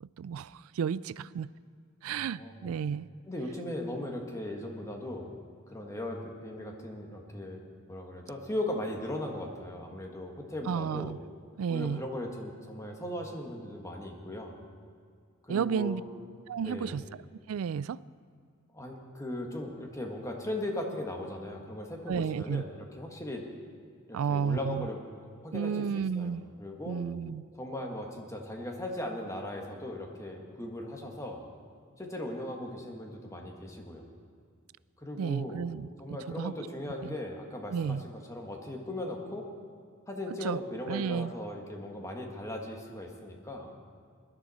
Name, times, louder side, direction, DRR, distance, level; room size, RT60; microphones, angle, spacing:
voice 1, 0.0-1.5 2.0-3.1 10.7-11.2 11.6-12.0 15.5-16.0 16.5-17.0 17.5-18.0 22.1-22.6 24.1-24.9 25.5-26.5 26.9-27.4 35.2-36.5 37.0-37.1 37.7-38.0 40.4-40.6 40.9-41.3, right 7 dB, 70° right, 19 dB, 0.3 m, -32 dB
voice 2, 2.0-2.8 3.3-5.3 5.7-7.6 7.9-11.1 11.7-14.5 15.4-16.1 16.6-17.0 18.7-23.4 24.1-25.0 25.4-27.0 27.6-31.4 32.0-34.0 35.0-35.6 36.0-39.4 40.1-43.7, left 1 dB, 15° left, 1 dB, 1.6 m, -38 dB
20.0 x 12.0 x 4.3 m, 2.2 s
head